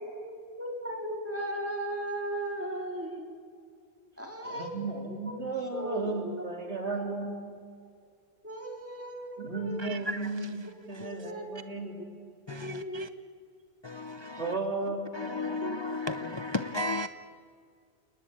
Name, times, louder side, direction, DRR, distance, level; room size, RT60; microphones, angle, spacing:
voice 1, 0.0-3.4 4.2-4.8 5.3-5.4 5.7-6.4 6.8-7.2 8.4-9.8 11.0-11.5 12.6-13.3 14.9-15.0 15.6-15.8, right 1 dB, 10° right, 3.9 m, -37 dB
voice 2, 4.4-7.5 9.4-12.1 14.4-15.5, right 3 dB, 75° right, 3.8 m, -35 dB
voice 3, 9.8-10.3 10.9-11.1 12.5-13.1 13.8-14.6 15.1-17.1, left 2 dB, 30° left, 0.6 m, -34 dB
29.5 x 19.5 x 8.7 m
omnidirectional pair, 1.2 m